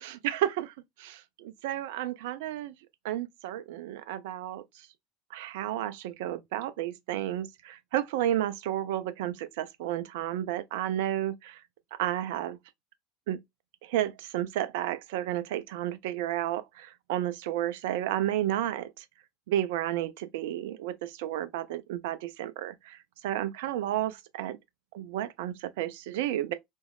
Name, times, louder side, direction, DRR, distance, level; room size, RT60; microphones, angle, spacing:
voice 1, 0.2-2.7 3.0-4.6 5.3-11.6 12.0-12.6 13.3-13.4 13.8-19.0 19.5-23.0 23.2-24.6 24.9-26.5, right 12 dB, 60° right, 0.4 m, -32 dB
3.0 x 2.6 x 2.2 m
figure-of-eight pair, 70°, 0 cm